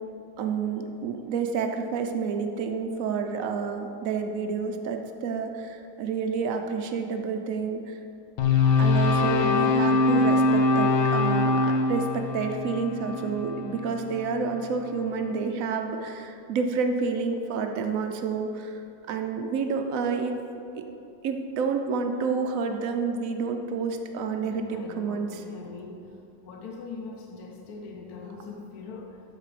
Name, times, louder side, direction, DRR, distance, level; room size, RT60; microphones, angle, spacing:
voice 1, 0.4-8.0 8.8-18.8 19.1-20.4 21.2-25.4, right 5 dB, 75° right, 5 dB, 0.7 m, -29 dB
sound 1, 8.4-14.6, left 3 dB, 80° left, 1.7 m, -23 dB
voice 2, 24.4-26.1 26.4-29.2, left 4 dB, 60° left, 1 dB, 1.0 m, -40 dB
12.5 x 4.9 x 4.9 m, 2.6 s
omnidirectional pair, 2.2 m